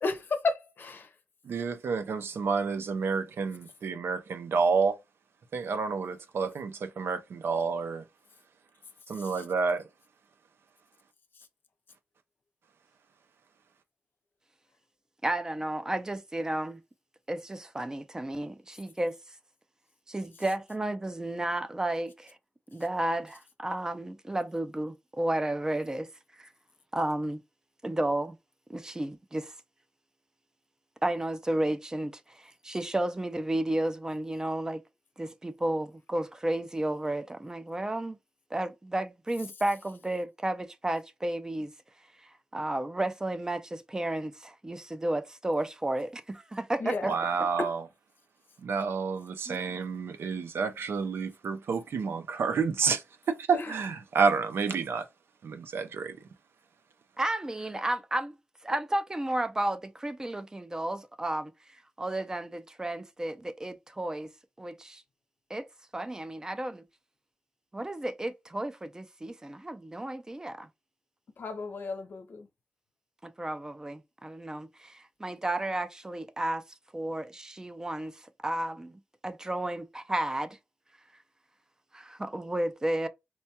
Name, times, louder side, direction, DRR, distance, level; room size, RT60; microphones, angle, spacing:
voice 1, 0.0-1.1 9.1-9.4 46.8-47.2 47.6-47.7 53.5-53.7 71.4-72.5, left 3 dB, 60° left, 0.6 m, -33 dB
voice 2, 1.4-5.0 5.5-8.0 9.1-9.8 47.1-47.8 48.6-55.1 55.4-56.2, right 5 dB, 80° right, 0.5 m, -29 dB
voice 3, 15.2-16.8 17.3-19.2 20.1-22.4 22.7-26.1 26.4-26.5 26.9-27.4 27.8-28.4 28.7-29.5 31.0-34.8 35.2-38.2 38.5-41.7 42.2-47.1 49.5-49.8 57.2-58.4 58.6-61.5 62.0-64.3 64.6-65.0 65.5-65.7 65.9-66.8 67.7-70.7 73.2-76.6 76.9-80.6 81.9-83.1, right 1 dB, 15° right, 0.3 m, -32 dB
4.3 x 2.2 x 2.8 m
wide cardioid pair, 135°, 4 cm